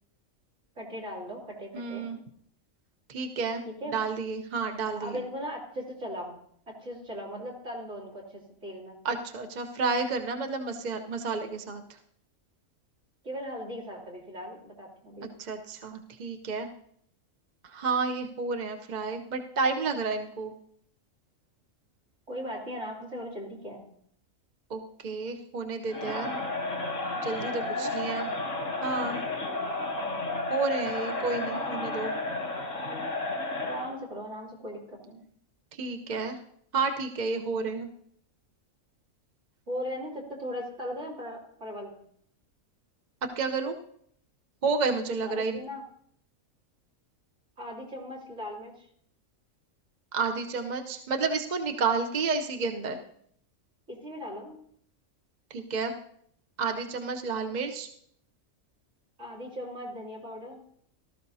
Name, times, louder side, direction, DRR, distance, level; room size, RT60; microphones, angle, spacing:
voice 1, 0.7-2.2 3.8-4.0 5.0-6.4 6.7-9.0 13.2-15.3 22.3-23.8 27.7-28.0 33.6-35.2 39.7-42.0 45.2-45.8 47.6-48.9 53.9-54.6 59.2-60.6, equal, 55° right, -1 dB, 3.2 m, -38 dB
voice 2, 1.7-2.2 3.1-3.6 3.9-5.2 9.0-12.0 15.4-16.7 17.6-20.5 24.7-26.3 27.2-28.3 28.8-29.2 30.5-32.1 35.7-36.4 36.7-37.9 43.4-43.8 44.6-45.6 50.1-53.0 55.5-55.9 56.6-57.9, right 4 dB, 40° right, 5 dB, 0.7 m, -30 dB
Crowd, 25.9-33.9, left 2 dB, 70° left, 2.5 m, -32 dB
18.0 x 13.0 x 2.7 m, 0.66 s
omnidirectional pair, 1.4 m